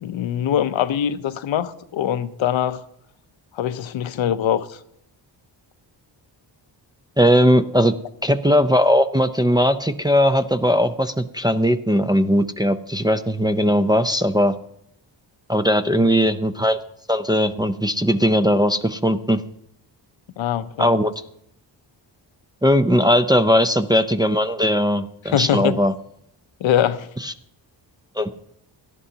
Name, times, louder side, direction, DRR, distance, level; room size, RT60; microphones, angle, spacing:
voice 1, 0.0-2.8 3.5-4.8 16.0-16.2 20.4-20.9 25.3-25.8 26.6-27.1, left 10 dB, 80° left, 0.7 m, -23 dB
voice 2, 7.2-7.9 8.2-14.5 15.5-16.8 17.1-19.4 20.8-21.1 22.6-25.9 27.2-27.3 28.2-28.3, equal, 10° right, 0.4 m, -18 dB
17.5 x 11.5 x 2.8 m
cardioid pair, 85°, 46 cm